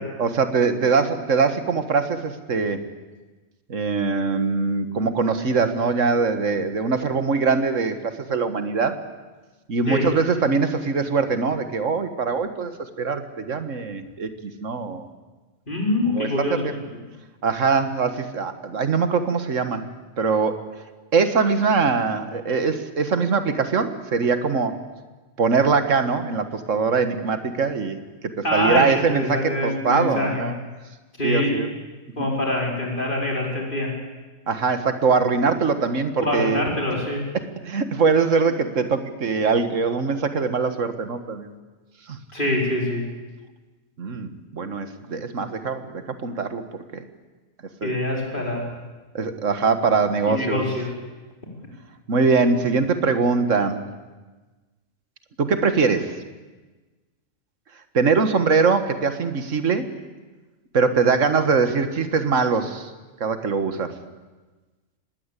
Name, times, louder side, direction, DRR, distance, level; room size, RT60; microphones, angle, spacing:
voice 1, 0.0-2.8 3.7-9.0 9.7-15.1 16.1-16.8 17.4-19.9 20.2-20.7 21.1-24.8 25.4-30.6 31.2-31.7 32.2-32.3 34.5-36.6 37.6-41.5 42.1-42.2 44.0-46.6 46.9-47.0 47.8-48.0 49.1-50.7 52.1-53.8 55.4-56.2 57.9-59.9 60.7-62.9 63.2-64.0, right 4 dB, 65° right, 9 dB, 1.9 m, -22 dB
voice 2, 15.7-16.6 28.4-28.9 29.1-30.5 31.2-31.5 32.2-33.9 36.2-37.2 42.3-43.0 47.8-48.6 50.2-50.9, left 1 dB, 35° left, -1 dB, 5.0 m, -24 dB
25.5 x 19.5 x 8.4 m, 1.2 s
omnidirectional pair, 1.4 m